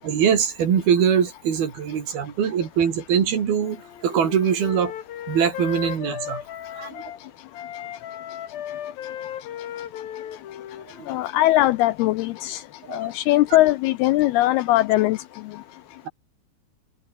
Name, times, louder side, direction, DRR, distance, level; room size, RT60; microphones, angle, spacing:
voice 1, 0.0-4.9 5.3-6.4 6.8-7.0 11.0-11.2 12.9-13.1, right 8 dB, 60° right, 4.7 m, -22 dB
Wind instrument woodwind instrument, 3.6-7.2 7.5-11.3, left 10 dB, 60° left, 3.5 m, -36 dB
voice 2, 11.1-12.6 12.9-15.2, left 16 dB, 85° left, 2.4 m, -20 dB
omnidirectional pair, 5.0 m